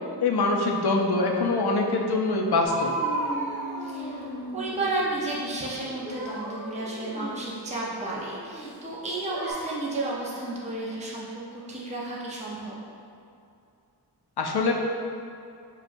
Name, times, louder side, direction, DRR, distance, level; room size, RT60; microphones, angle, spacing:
voice 1, 0.2-2.9 14.4-14.7, left 3 dB, 65° left, 1 dB, 0.6 m, -24 dB
sound 1, 2.6-5.1 5.8-8.8 9.3-9.5, right 2 dB, 15° left, 1.1 m, -34 dB
voice 2, 3.8-12.7, right 2 dB, 15° right, -5 dB, 0.6 m, -32 dB
6.5 x 2.3 x 2.5 m, 2.5 s
wide cardioid pair, 70°, 42 cm